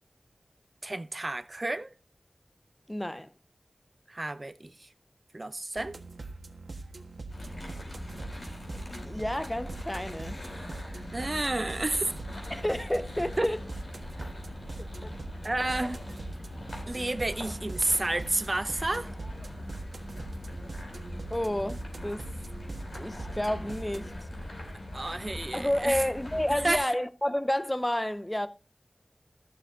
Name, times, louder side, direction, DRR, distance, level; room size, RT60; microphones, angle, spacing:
voice 1, 0.8-1.9 4.1-4.9 5.3-6.0 11.1-12.2 13.4-13.5 15.4-16.0 16.9-19.1 24.9-26.0 26.5-26.9, right 2 dB, 40° right, 0.8 m, -30 dB
voice 2, 2.9-3.3 9.0-10.4 12.5-13.6 14.8-15.1 21.3-22.3 23.0-24.1 25.5-28.5, left 1 dB, 15° left, 0.7 m, -30 dB
sound 1, 5.8-24.1, right 3 dB, 85° right, 1.4 m, -43 dB
sound 2, 7.3-26.8, left 1 dB, 65° left, 5.0 m, -41 dB
14.5 x 6.7 x 3.8 m
wide cardioid pair, 70°, 0 cm